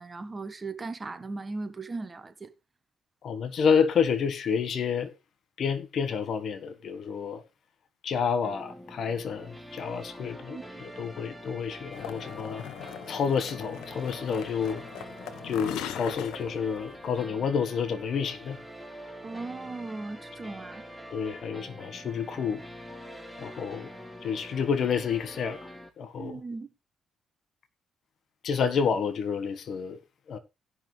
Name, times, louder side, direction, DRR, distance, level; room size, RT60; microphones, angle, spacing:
voice 1, 0.0-2.5 10.2-10.6 19.2-20.8 26.2-26.7, right 3 dB, 25° right, 1.4 m, -38 dB
voice 2, 3.2-5.1 5.6-7.4 8.0-12.6 13.1-14.8 15.4-18.6 21.1-22.6 23.4-23.9 24.2-25.6 26.0-26.4 28.4-30.0 30.3-30.4, left 6 dB, 60° left, 1.4 m, -29 dB
sound 1, 8.4-25.9, equal, 5° left, 1.9 m, -45 dB
sound 2, 11.9-17.3, left 10 dB, 90° left, 0.9 m, -41 dB
17.5 x 6.2 x 3.3 m
cardioid pair, 90°, 0 cm